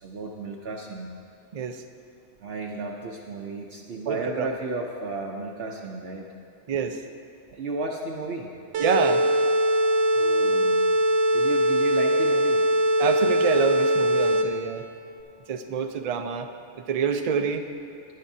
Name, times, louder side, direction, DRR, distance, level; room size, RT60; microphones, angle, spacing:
voice 1, 0.0-1.1 2.4-6.3 7.5-8.5 10.1-10.8 11.3-12.7, right 3 dB, 60° right, 0 dB, 0.9 m, -33 dB
voice 2, 4.1-4.5 6.7-7.0 8.8-9.2 13.0-14.8 15.5-16.5 16.8-17.6, right 6 dB, 45° right, 6 dB, 0.5 m, -27 dB
sound 1, 8.7-14.7, equal, 90° right, 1.0 m, -21 dB
17.0 x 10.0 x 2.7 m, 2.5 s
omnidirectional pair, 1.2 m